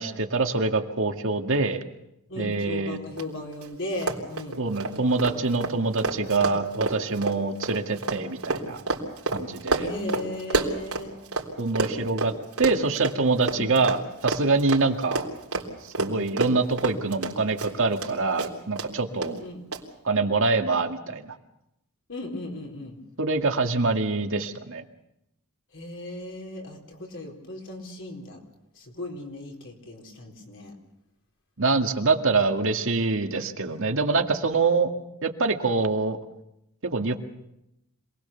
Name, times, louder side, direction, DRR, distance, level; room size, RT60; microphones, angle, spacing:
voice 1, 0.0-1.8 2.4-3.0 4.6-8.8 9.3-9.9 11.6-12.3 12.6-15.3 15.8-19.4 20.0-21.3 23.2-24.8 31.6-34.9 35.2-36.2 36.8-37.2, right 3 dB, 60° right, 5 dB, 2.0 m, -25 dB
voice 2, 2.3-4.6 9.8-11.1 13.4-13.7 19.1-19.7 22.1-23.0 25.7-28.4 28.7-30.7 33.7-34.0, left 1 dB, 60° left, 1 dB, 4.4 m, -37 dB
Run, 3.2-3.3 3.5-3.7 4.0-11.5 11.8-18.1 18.4-18.9 19.2-19.3 19.7-19.8, right 3 dB, 80° right, 3.5 m, -29 dB
27.0 x 20.0 x 7.0 m, 0.84 s
head